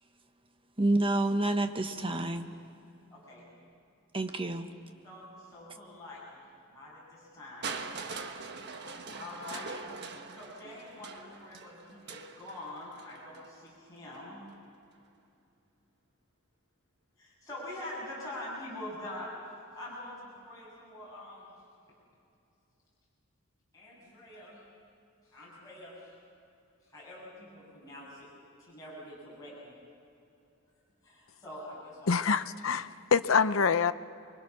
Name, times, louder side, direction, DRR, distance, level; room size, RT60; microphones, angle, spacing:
voice 1, 0.8-2.5 4.1-4.7, right 2 dB, 25° right, 1.3 m, -28 dB
voice 2, 3.1-3.5 5.0-6.2 6.7-7.7 9.1-9.8 10.3-14.5 17.2-19.3 19.7-21.5 23.7-24.6 25.3-26.1 26.9-28.3 28.6-29.7 31.0-32.2, left 1 dB, 15° left, 7.4 m, -45 dB
Crushing, 7.6-13.5 14.5-14.6, right 4 dB, 55° right, 1.4 m, -42 dB
voice 3, 32.1-33.9, left 5 dB, 70° left, 0.7 m, -26 dB
29.0 x 23.5 x 6.2 m
head